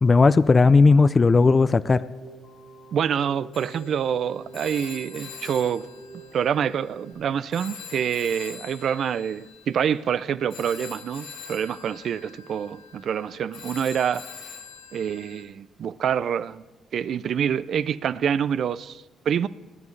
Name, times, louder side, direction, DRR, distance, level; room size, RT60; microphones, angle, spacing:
voice 1, 0.0-2.0, left 4 dB, 30° left, 0.4 m, -16 dB
Keyboard (musical), 1.7-7.1, right 2 dB, 65° left, 2.2 m, -46 dB
voice 2, 2.9-5.9 6.3-14.3 14.9-16.6 16.9-19.5, right 8 dB, 65° right, 0.4 m, -26 dB
Telephone, 3.5-7.2 7.5-15.4, left 6 dB, 90° left, 1.6 m, -44 dB
20.5 x 11.0 x 3.3 m
cardioid pair, 90°, 0 cm